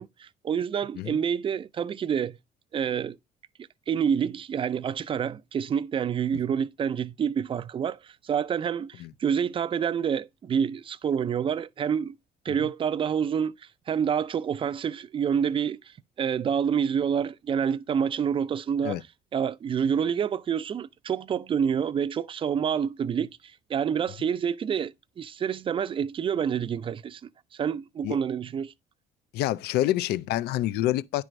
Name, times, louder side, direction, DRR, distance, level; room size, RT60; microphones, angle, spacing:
voice 1, 0.0-2.4 2.7-3.2 3.9-12.2 12.5-13.5 13.9-15.8 16.2-19.0 19.3-23.3 23.7-27.2 27.6-28.7, right 7 dB, 30° right, 0.4 m, -27 dB
voice 2, 29.3-31.2, left 14 dB, 75° left, 0.4 m, -27 dB
9.7 x 4.6 x 2.5 m
cardioid pair, 110°, 17 cm